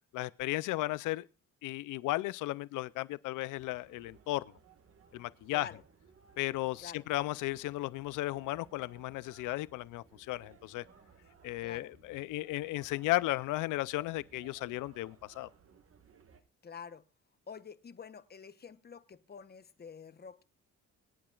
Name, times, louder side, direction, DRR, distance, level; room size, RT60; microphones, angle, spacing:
voice 1, 0.1-1.3 1.6-4.5 5.1-5.7 6.4-10.8 11.4-15.5, left 18 dB, 85° left, 0.5 m, -35 dB
sound 1, 3.6-16.4, right 6 dB, 50° right, 1.7 m, -61 dB
voice 2, 5.5-5.8 6.8-7.1 11.6-11.9 16.6-17.0 17.5-20.4, left 6 dB, 35° left, 0.9 m, -48 dB
24.5 x 8.8 x 2.4 m
cardioid pair, 90°, 30 cm